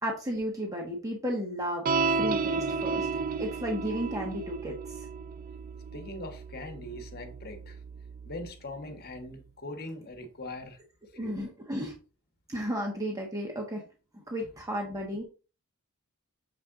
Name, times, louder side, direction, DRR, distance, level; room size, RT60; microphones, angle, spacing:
voice 1, 0.0-4.8 11.1-11.9 12.5-13.8 14.3-15.2, equal, 15° right, 1.1 m, -33 dB
sound 1, 1.8-8.5, right 4 dB, 40° right, 0.4 m, -33 dB
voice 2, 5.9-7.8 8.2-10.8 11.1-11.4 14.4-14.5, left 1 dB, 45° left, 1.3 m, -41 dB
6.9 x 4.2 x 3.7 m
head